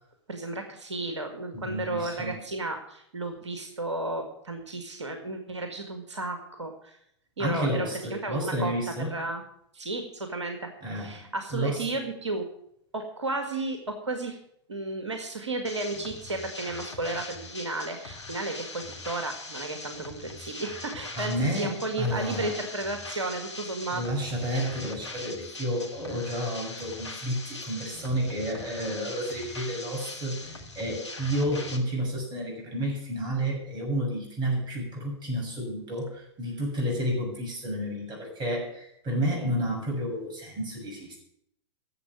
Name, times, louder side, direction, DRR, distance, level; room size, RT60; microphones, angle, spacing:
voice 1, 0.3-7.0 7.4-8.7 9.1-9.4 9.7-10.7 11.0-12.4 12.9-14.4 14.7-24.0 39.4-39.5, right 2 dB, 80° right, 5 dB, 1.9 m, -33 dB
voice 2, 1.5-2.4 7.4-9.2 10.8-12.0 21.1-22.5 23.9-41.2, equal, 30° right, -1 dB, 7.1 m, -31 dB
sound 1, 15.6-31.8, left 3 dB, 80° left, 2.4 m, -41 dB
11.0 x 7.7 x 9.3 m, 0.71 s
figure-of-eight pair, 100°, 15 cm